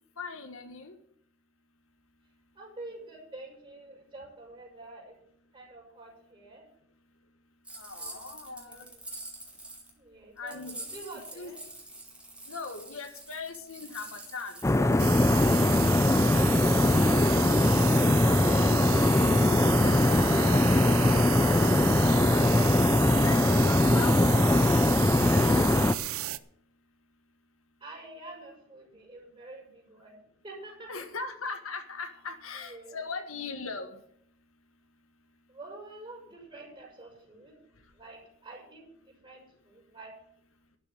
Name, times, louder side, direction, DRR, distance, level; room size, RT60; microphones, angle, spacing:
voice 1, 0.2-0.9 7.8-8.9 10.4-10.8 11.3-11.5 12.5-15.1 17.0-17.3 17.9-18.1 19.6-20.9 22.3-22.8 23.2-23.4 23.6-24.8 25.3-26.2 30.9-34.0, left 4 dB, 75° left, 7 dB, 1.5 m, -40 dB
voice 2, 2.6-5.1 5.5-6.6 8.0-8.2 8.7-9.0 10.0-11.6 17.6-18.3 27.8-31.1 32.7-33.1 35.5-37.6 37.9-40.1, right 2 dB, 25° right, -2 dB, 5.6 m, -48 dB
sound 1, 7.7-9.9 10.5-18.0, right 1 dB, 5° right, 2.9 m, -46 dB
sound 2, 14.6-25.9, left 1 dB, 15° left, 0.4 m, -22 dB
sound 3, 15.0-26.4, right 13 dB, 80° right, 0.6 m, -33 dB
12.0 x 6.9 x 8.9 m, 0.68 s
head